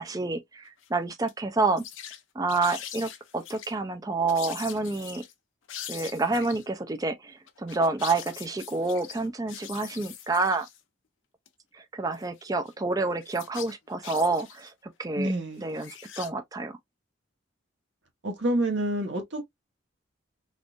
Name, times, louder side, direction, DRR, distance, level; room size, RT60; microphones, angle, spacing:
voice 1, 0.0-1.8 2.4-5.2 5.9-10.7 11.9-14.7 15.0-15.3 15.6-16.8, right 3 dB, 20° right, 0.4 m, -28 dB
sound 1, 0.6-0.9 1.3-1.4 1.7-2.2 2.5-3.7 4.3-5.3 5.7-6.7 7.5-10.8 11.5-11.6 12.1-12.7 13.2-14.7 15.6-16.3, left 10 dB, 85° left, 0.7 m, -42 dB
voice 2, 15.2-15.7 18.2-19.5, right 1 dB, 65° right, 1.2 m, -28 dB
3.7 x 2.5 x 2.4 m
head